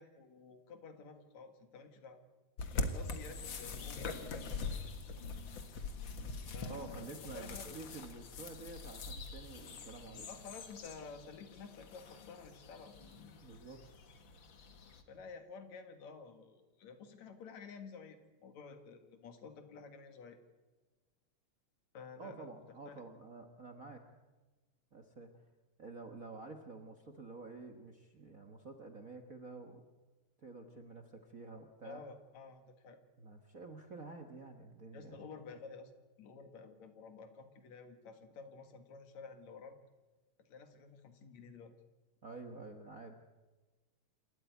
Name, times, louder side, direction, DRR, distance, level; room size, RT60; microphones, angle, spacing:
voice 1, 0.0-2.2 2.7-4.8 6.5-7.6 10.3-12.9 15.1-20.4 21.9-22.5 22.9-23.0 31.8-33.0 34.9-35.9 36.2-39.8 40.4-41.7, left 5 dB, 70° left, 8 dB, 3.1 m, -51 dB
sound 1, 2.6-15.0, left 3 dB, 45° left, 2.0 m, -43 dB
voice 2, 6.7-10.3 13.4-13.8 22.2-24.1 24.9-25.3 25.8-29.8 30.4-32.0 33.2-35.3 42.2-43.1, right 3 dB, 45° right, 6 dB, 1.2 m, -50 dB
sound 2, 9.5-9.8 10.9-11.2 12.9-13.3, equal, 10° right, 7.0 m, -67 dB
27.5 x 13.5 x 9.4 m, 1.2 s
omnidirectional pair, 3.3 m